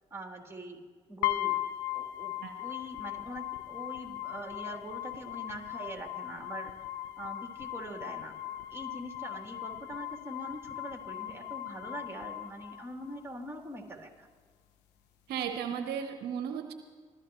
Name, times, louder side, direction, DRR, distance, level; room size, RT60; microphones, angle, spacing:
voice 1, 0.1-0.8 1.1-1.6 1.9-6.7 7.2-8.3 8.7-14.3, right 1 dB, 15° right, 1 dB, 3.0 m, -43 dB
sound 1, 1.2-13.2, left 14 dB, 75° left, 0.7 m, -38 dB
voice 2, 15.3-16.7, right 8 dB, 70° right, 7 dB, 0.9 m, -35 dB
24.0 x 15.0 x 3.1 m, 1.5 s
hypercardioid pair, 45°, 17 cm